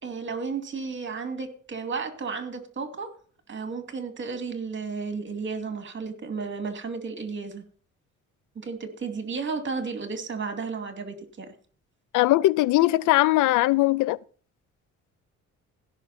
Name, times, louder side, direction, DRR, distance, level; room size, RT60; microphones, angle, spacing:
voice 1, 0.0-3.1 3.5-7.6 8.6-11.5, right 4 dB, 40° right, 2.6 m, -33 dB
voice 2, 12.1-14.2, left 17 dB, 85° left, 0.5 m, -20 dB
16.5 x 5.9 x 4.2 m
cardioid pair, 90°, 30 cm